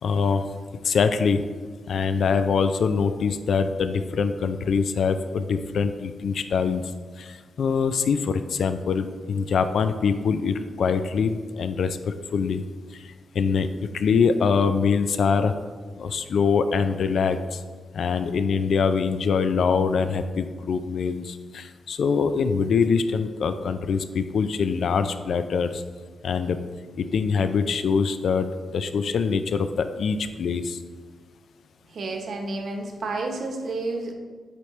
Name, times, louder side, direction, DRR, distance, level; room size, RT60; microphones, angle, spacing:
voice 1, 0.0-0.5 0.8-1.4 1.9-6.9 7.2-12.6 12.9-13.7 13.9-15.5 16.0-17.6 17.9-25.8 26.2-26.6 27.0-30.8, left 5 dB, 75° left, 10 dB, 0.4 m, -24 dB
voice 2, 31.8-34.1, right 3 dB, 70° right, 3 dB, 1.0 m, -30 dB
8.2 x 4.5 x 3.2 m, 1.5 s
cardioid pair, 85°, 0 cm